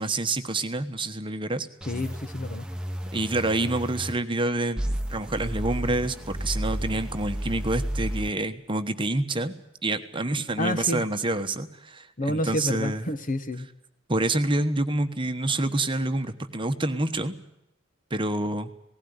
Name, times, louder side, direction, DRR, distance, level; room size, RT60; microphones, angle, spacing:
voice 1, 0.0-1.7 3.1-9.5 9.8-13.1 14.1-17.3 18.1-18.7, right 2 dB, 25° right, 8 dB, 1.2 m, -27 dB
sound 1, 1.8-4.1 4.8-8.3, equal, 5° right, 1.2 m, -32 dB
voice 2, 1.9-2.7 10.6-11.0 12.2-13.7, left 1 dB, 40° left, 10 dB, 1.4 m, -29 dB
19.0 x 16.0 x 9.5 m, 0.86 s
head